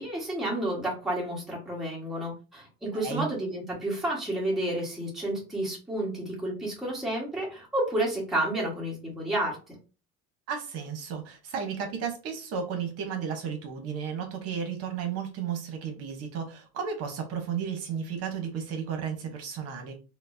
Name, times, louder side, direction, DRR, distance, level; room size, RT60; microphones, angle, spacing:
voice 1, 0.0-9.6, right 1 dB, ahead, -5 dB, 1.4 m, -30 dB
voice 2, 10.5-19.9, right 7 dB, 50° right, 4 dB, 1.0 m, -33 dB
4.4 x 2.1 x 2.6 m, 0.33 s
supercardioid pair, 130°, 30 cm